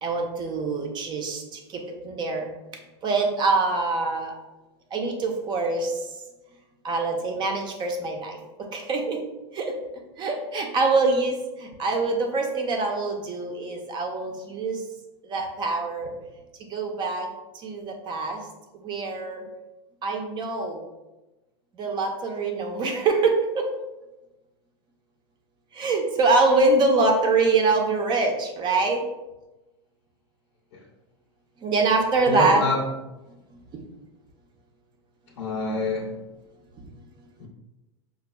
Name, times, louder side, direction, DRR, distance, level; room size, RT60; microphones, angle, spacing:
voice 1, 0.0-1.4 1.7-2.5 3.0-4.3 4.9-5.9 6.8-8.4 8.7-9.2 9.5-9.7 10.2-14.8 15.3-16.1 16.7-17.3 17.6-18.4 18.8-19.4 20.0-20.8 21.8-23.7 25.8-29.0 31.6-32.6, right 3 dB, 30° right, 0.5 m, -24 dB
voice 2, 32.3-32.9 35.4-36.2 37.4-37.5, left 3 dB, 70° left, 0.7 m, -27 dB
5.0 x 2.3 x 2.2 m
supercardioid pair, 125°, 15 cm